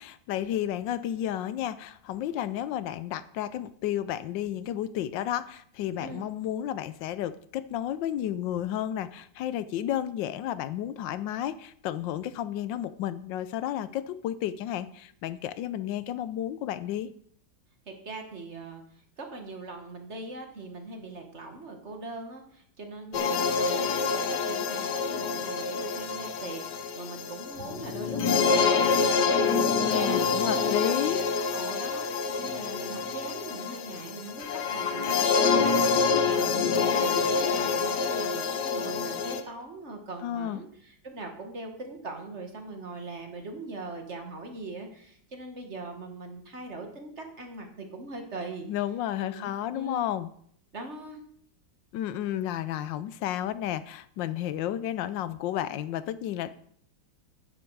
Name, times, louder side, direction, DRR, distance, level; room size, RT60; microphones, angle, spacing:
voice 1, 0.0-17.1 29.7-31.2 40.2-40.6 48.6-50.3 51.9-56.6, left 11 dB, 80° left, 15 dB, 1.3 m, -32 dB
voice 2, 17.9-18.8 19.2-30.9 31.5-48.7 49.2-50.1 50.7-51.2, right 2 dB, 40° right, 4 dB, 1.8 m, -41 dB
sound 1, 23.1-39.4, left 5 dB, 65° left, 1.5 m, -26 dB
9.9 x 9.6 x 4.7 m, 0.64 s
omnidirectional pair, 2.0 m